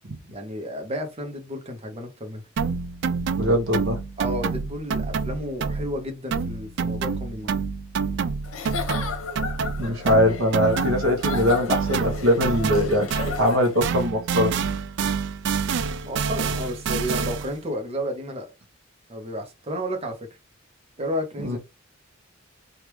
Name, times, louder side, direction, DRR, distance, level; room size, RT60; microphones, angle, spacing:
voice 1, 0.2-2.4 4.2-7.6 16.0-18.5 19.1-20.3 21.0-21.6, equal, 30° right, 0.8 m, -32 dB
sound 1, 2.6-6.0 6.3-13.6 13.8-17.6, right 5 dB, 55° right, 0.3 m, -27 dB
voice 2, 3.4-4.0 9.8-13.1 13.4-14.5 21.4-21.6, equal, 80° right, 0.9 m, -21 dB
Giggle / Chuckle chortle, 8.4-13.9, left 6 dB, 90° left, 0.9 m, -34 dB
3.4 x 2.4 x 3.0 m
head